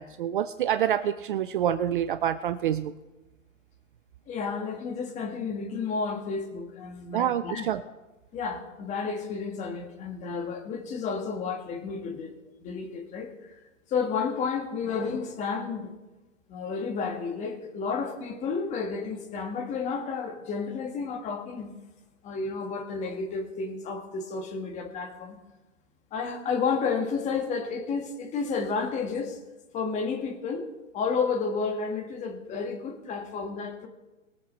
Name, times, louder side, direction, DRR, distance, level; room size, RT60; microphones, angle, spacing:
voice 1, 0.0-2.9 7.1-7.8, right 10 dB, 40° right, 11 dB, 0.5 m, -27 dB
voice 2, 4.3-7.7 8.3-13.5 13.9-15.9 16.5-21.7 22.2-25.4 26.1-29.4 29.7-30.7 30.9-33.9, left 5 dB, 20° left, 5 dB, 1.6 m, -31 dB
21.5 x 7.5 x 4.1 m, 1.1 s
hypercardioid pair, 140°, 39 cm